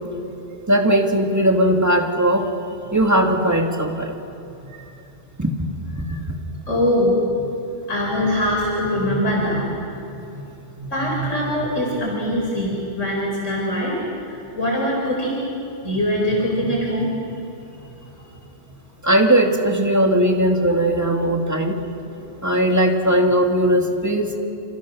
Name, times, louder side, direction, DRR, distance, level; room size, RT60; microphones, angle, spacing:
voice 1, 0.7-2.5 2.9-4.2 4.7-4.8 5.4-5.5 6.1-6.2 19.0-21.8 22.4-24.4, right 1 dB, 15° right, 2 dB, 2.5 m, -18 dB
voice 2, 6.7-7.5 7.9-9.7 10.3-10.4 10.8-14.0 14.5-15.4 15.8-17.1 22.1-22.4, equal, 85° left, -2 dB, 4.9 m, -22 dB
28.5 x 28.0 x 6.5 m, 2.9 s
omnidirectional pair, 1.2 m